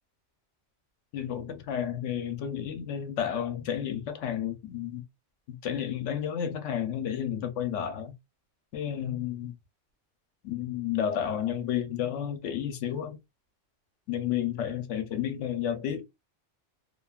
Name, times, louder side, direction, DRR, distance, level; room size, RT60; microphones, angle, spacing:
voice 1, 1.1-5.0 5.5-8.1 8.7-9.5 10.4-13.2 14.1-16.0, left 9 dB, 85° left, 0.9 m, -31 dB
2.7 x 2.2 x 2.3 m
omnidirectional pair, 1.2 m